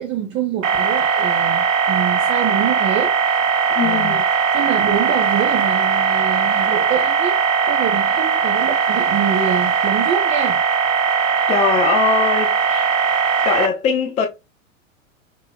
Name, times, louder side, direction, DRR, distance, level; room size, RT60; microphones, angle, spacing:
voice 1, 0.0-3.4 3.8-4.2 4.5-7.4 7.7-10.6, right 9 dB, 30° right, 0.9 m, -25 dB
sound 1, 0.6-13.7, right 6 dB, 65° right, 0.9 m, -19 dB
voice 2, 3.8-4.2 11.5-13.0 13.4-14.3, left 6 dB, 15° left, 0.6 m, -21 dB
6.1 x 3.0 x 2.2 m
figure-of-eight pair, 95°, 41 cm